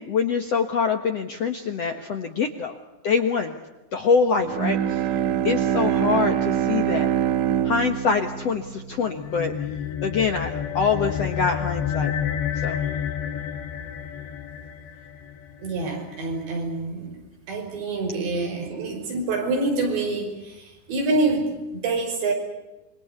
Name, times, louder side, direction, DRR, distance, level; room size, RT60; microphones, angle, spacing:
voice 1, 0.0-2.8 3.0-3.5 3.9-5.0 5.4-7.1 7.6-9.5 10.0-12.1 12.6-12.8, left 5 dB, 60° left, 6 dB, 1.7 m, -24 dB
Bowed string instrument, 4.4-9.8, right 10 dB, 65° right, 2.1 m, -25 dB
sound 1, 9.0-15.7, left 8 dB, 90° left, 4.2 m, -29 dB
voice 2, 15.6-17.1 17.5-22.3, right 3 dB, 85° right, 3 dB, 7.9 m, -26 dB
27.5 x 24.0 x 8.2 m, 1.1 s
omnidirectional pair, 4.9 m